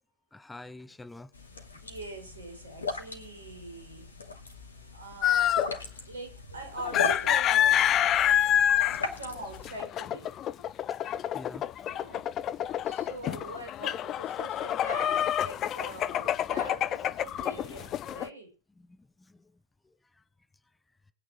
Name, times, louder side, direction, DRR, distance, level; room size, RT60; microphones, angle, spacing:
voice 1, 0.3-1.3 11.3-11.7 12.6-12.9 18.8-19.0 19.3-19.5, left 2 dB, 10° left, 1.0 m, -47 dB
sound 1, 1.3-9.8, left 4 dB, 75° left, 2.4 m, -39 dB
voice 2, 1.8-4.1 4.9-5.6 6.1-7.9 8.3-10.4 11.9-12.3 12.8-18.5, right 1 dB, 70° right, 6.2 m, -43 dB
sound 2, 5.2-5.8 6.8-18.3, left 11 dB, 30° left, 0.7 m, -27 dB
20.0 x 9.4 x 6.5 m
figure-of-eight pair, 90°, 0 cm